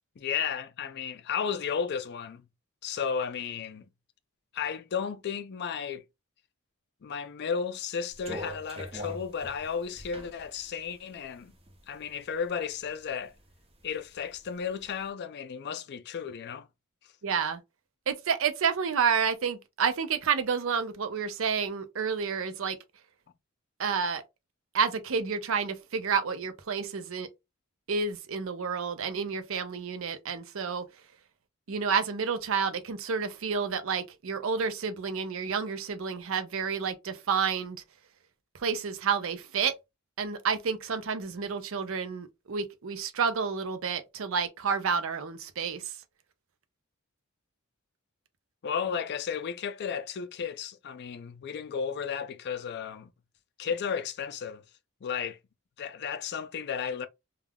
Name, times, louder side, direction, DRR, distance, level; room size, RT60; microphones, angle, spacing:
voice 1, 0.2-2.4 2.8-3.9 4.5-6.0 7.0-11.5 11.9-13.3 13.8-16.7 48.6-53.1 53.6-54.6 55.0-55.4 55.8-57.1, left 7 dB, 50° left, 0.4 m, -33 dB
sound 1, 8.1-12.1 12.5-13.5 13.9-14.9, equal, 30° right, 0.7 m, -42 dB
voice 2, 17.2-17.6 18.1-22.8 23.8-24.2 24.7-27.3 27.9-30.8 31.7-37.8 38.6-39.7 40.2-45.8, right 6 dB, 70° right, 0.5 m, -30 dB
3.4 x 2.3 x 2.2 m
head